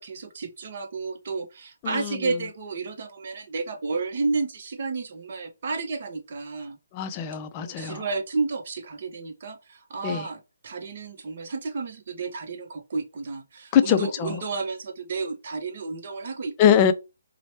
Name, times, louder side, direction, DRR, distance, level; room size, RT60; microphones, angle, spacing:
voice 1, 0.0-6.8 7.6-16.9, right 4 dB, 50° right, 0.7 m, -32 dB
voice 2, 6.9-8.0 10.0-10.2 13.7-14.4 16.6-16.9, left 8 dB, 25° left, 0.4 m, -22 dB
2.9 x 2.1 x 2.9 m
hypercardioid pair, 155°, 0 cm